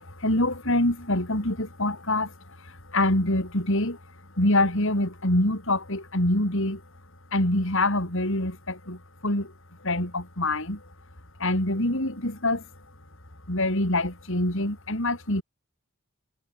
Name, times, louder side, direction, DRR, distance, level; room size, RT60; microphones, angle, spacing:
voice 1, 0.2-2.3 2.9-4.0 4.4-6.8 7.3-9.5 9.8-10.8 11.4-12.6 13.5-15.4, left 1 dB, 60° left, 5.7 m, -25 dB
head